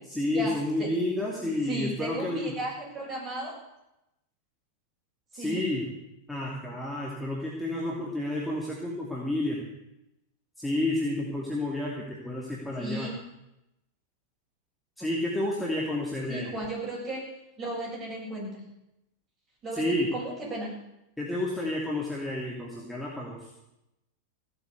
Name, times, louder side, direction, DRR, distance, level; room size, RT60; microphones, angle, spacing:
voice 1, 0.1-2.5 5.3-5.9 6.3-9.7 10.6-13.1 15.0-16.5 19.7-20.1 21.2-23.5, left 1 dB, 5° left, -4 dB, 2.7 m, -30 dB
voice 2, 1.7-3.6 5.3-5.7 12.8-13.1 16.3-17.3 17.6-18.6 19.6-20.7, right 1 dB, 25° right, -3 dB, 7.7 m, -34 dB
16.5 x 8.0 x 8.4 m, 0.89 s
figure-of-eight pair, 90°, 0 cm